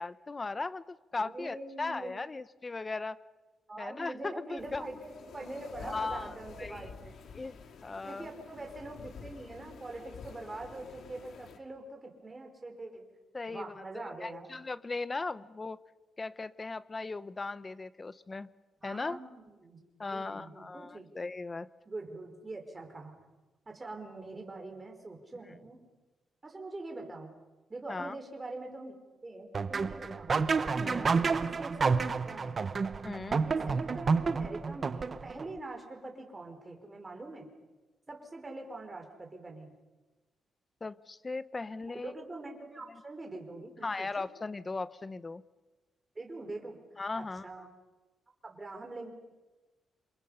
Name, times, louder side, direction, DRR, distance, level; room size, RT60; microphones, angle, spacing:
voice 1, 0.0-3.2 3.8-4.9 5.8-6.8 7.3-7.6 7.8-8.3 13.3-15.8 16.2-18.5 18.8-19.2 20.0-21.7 27.9-28.2 30.8-31.1 33.0-33.5 40.8-42.1 42.9-43.0 43.8-45.4 47.0-47.5, left 3 dB, 25° left, 15 dB, 0.9 m, -38 dB
voice 2, 1.1-2.1 3.7-7.2 8.1-13.0 13.5-14.5 18.8-19.8 20.1-21.1 21.8-23.1 23.6-25.8 26.4-27.3 27.7-29.0 29.2-30.4 30.9-32.6 33.5-37.5 38.1-39.7 42.0-44.3 46.1-46.8 47.1-47.7 48.4-49.1, right 2 dB, 20° right, 3 dB, 5.1 m, -44 dB
sound 1, 4.6-11.6, left 5 dB, 65° left, 2.5 m, -49 dB
sound 2, 29.5-35.5, right 4 dB, 35° right, 0.9 m, -29 dB
28.5 x 27.5 x 5.7 m, 1.2 s
cardioid pair, 125°, 0 cm